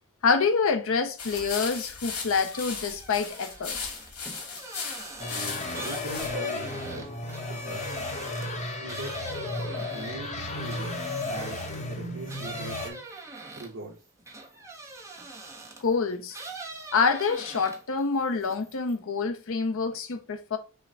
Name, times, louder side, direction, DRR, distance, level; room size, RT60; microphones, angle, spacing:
voice 1, 0.2-3.8 15.8-16.4 16.9-20.6, left 5 dB, 65° left, 0.6 m, -26 dB
sound 1, 1.2-6.3, left 5 dB, 80° left, 1.6 m, -37 dB
sound 2, 1.3-1.8 2.1-11.9 12.3-15.9 16.3-18.0 18.3-19.0, right 3 dB, 15° right, 0.7 m, -43 dB
sound 3, 5.2-12.9, left 2 dB, 30° left, 0.8 m, -34 dB
voice 2, 5.8-7.0 7.5-7.8 8.8-9.1 9.9-10.9 11.3-13.0 13.6-14.0, right 2 dB, 60° right, 0.9 m, -40 dB
5.7 x 2.1 x 3.9 m
head